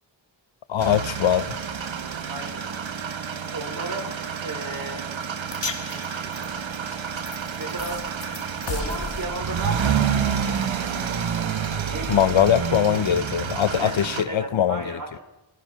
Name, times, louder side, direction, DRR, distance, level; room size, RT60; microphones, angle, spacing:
voice 1, 0.7-1.5 12.1-14.8, left 9 dB, 85° left, 0.9 m, -21 dB
sound 1, 0.8-14.2, right 7 dB, 85° right, 1.4 m, -29 dB
voice 2, 2.3-2.7 3.5-4.1 4.4-5.1 5.9-6.3 7.6-8.0 8.7-10.6 11.9-13.0 13.8-13.9 14.2-15.2, right 2 dB, 45° right, 5.5 m, -34 dB
sound 2, 5.5-11.9, left 4 dB, 65° left, 2.5 m, -38 dB
27.5 x 20.5 x 5.7 m
wide cardioid pair, 85°, 45 cm